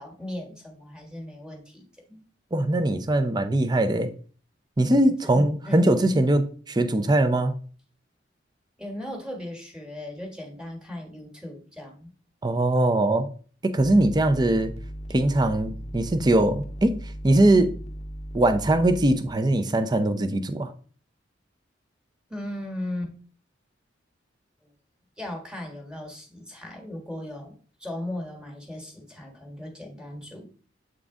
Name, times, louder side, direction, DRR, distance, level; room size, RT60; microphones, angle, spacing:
voice 1, 0.0-2.2 5.1-5.9 8.8-12.1 22.3-23.1 25.2-30.5, left 1 dB, 5° right, 1.4 m, -37 dB
voice 2, 2.5-4.1 4.8-7.5 12.4-13.3 13.6-14.7 15.1-17.0 17.2-17.7 18.3-20.7, right 1 dB, 20° right, 0.5 m, -21 dB
sound 1, 13.8-19.3, equal, 35° left, 0.6 m, -37 dB
7.9 x 3.8 x 3.6 m
head